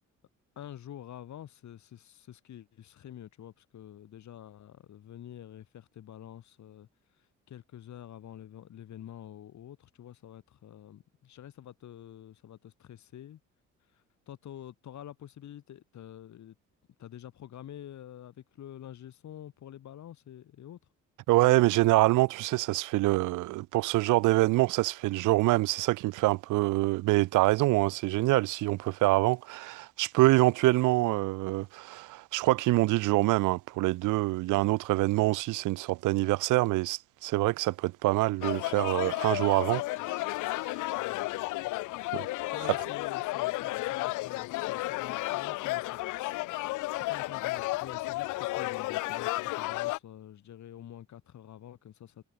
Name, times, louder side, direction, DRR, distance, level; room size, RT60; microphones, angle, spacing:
voice 1, 0.6-6.9 7.1-13.4 13.9-16.5 17.0-20.8 40.0-40.1 40.9-41.7 42.5-52.2, left 11 dB, 70° left, 4.3 m, -47 dB
voice 2, 21.3-39.8 40.1-40.2 42.1-42.3, right 19 dB, 90° right, 0.6 m, -25 dB
sound 1, 38.4-50.0, left 20 dB, 85° left, 0.5 m, -33 dB
cardioid pair, 90°, 30 cm